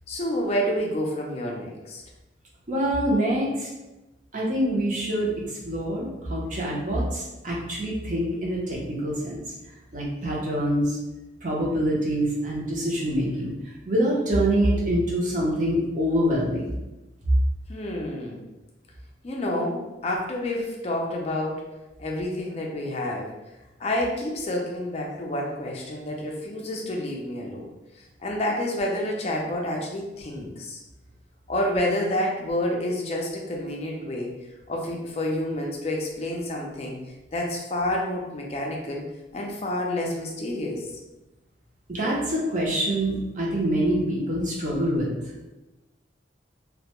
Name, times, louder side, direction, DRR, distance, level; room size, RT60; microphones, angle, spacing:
voice 1, 0.1-2.0 17.7-18.4 19.2-21.7 22.0-23.3 23.8-27.7 28.2-30.8 31.5-34.4 34.7-39.1 39.3-40.9, left 1 dB, 35° left, 0 dB, 0.4 m, -29 dB
voice 2, 2.7-3.7 4.3-9.4 9.9-11.0 11.4-16.7 41.9-45.1, right 1 dB, 40° right, -3 dB, 0.6 m, -25 dB
2.1 x 2.1 x 2.8 m, 1.0 s
head